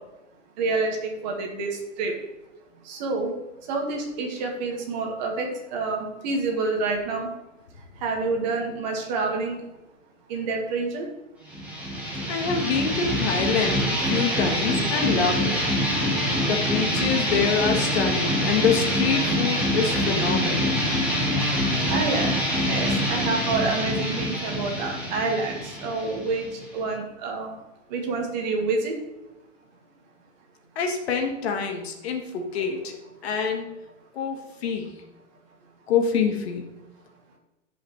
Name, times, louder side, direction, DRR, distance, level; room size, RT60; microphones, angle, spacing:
voice 1, 0.6-1.7 2.0-2.1 2.9-3.3 3.7-7.3 8.0-9.6 10.3-11.1 21.8-22.3 22.7-27.5 27.9-29.0, right 3 dB, 35° right, 1 dB, 1.9 m, -28 dB
sound 1, 11.5-26.9, equal, 5° right, 1.6 m, -25 dB
voice 2, 12.3-15.6 16.5-20.8 30.7-33.6 34.1-35.0 35.9-36.7, left 6 dB, 50° left, 4 dB, 1.7 m, -26 dB
16.0 x 5.6 x 3.2 m, 1.0 s
hypercardioid pair, 155°, 39 cm